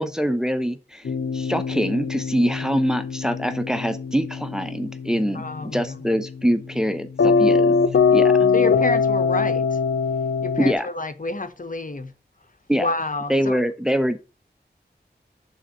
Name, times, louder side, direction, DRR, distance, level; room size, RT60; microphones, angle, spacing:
voice 1, 0.0-7.8 8.1-8.5 10.6-10.9 12.7-12.9 13.3-14.2, equal, 5° right, 0.7 m, -24 dB
sound 1, 1.0-10.7, left 5 dB, 80° left, 0.6 m, -22 dB
voice 2, 5.3-6.0 8.5-9.8 10.4-12.1 12.7-13.6, left 2 dB, 50° left, 1.0 m, -29 dB
6.4 x 4.1 x 6.2 m
wide cardioid pair, 45°, 18 cm